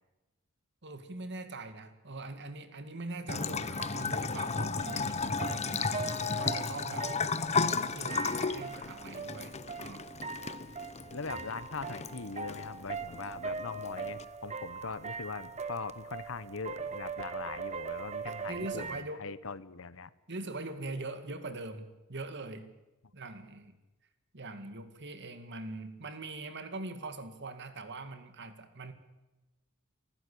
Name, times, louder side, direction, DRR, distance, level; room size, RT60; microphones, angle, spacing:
voice 1, 0.8-5.9 6.3-7.1 7.7-10.1 18.2-19.3 20.3-22.7 23.1-23.8 24.3-28.9, right 2 dB, 55° right, 9 dB, 2.1 m, -42 dB
Bathtub (filling or washing) / Trickle dribble, 3.3-14.2, left 4 dB, 30° left, 0.9 m, -34 dB
sound 1, 3.3-19.0, right 5 dB, 35° right, 1.1 m, -41 dB
voice 2, 11.1-20.1, left 4 dB, 70° left, 16 dB, 1.0 m, -41 dB
27.5 x 15.5 x 8.5 m, 1.1 s
head